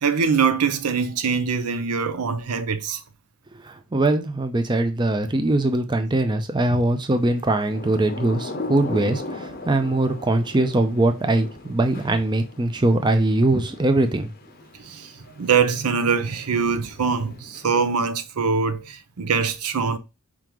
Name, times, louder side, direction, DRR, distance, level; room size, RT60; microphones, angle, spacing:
voice 1, 0.0-3.0 14.8-15.1 15.4-20.0, right 5 dB, 90° right, 0.6 m, -23 dB
voice 2, 3.5-14.3, right 2 dB, 20° right, 0.5 m, -22 dB
Thunder / Rain, 7.4-18.0, left 2 dB, 40° left, 0.7 m, -39 dB
4.8 x 3.7 x 3.0 m
head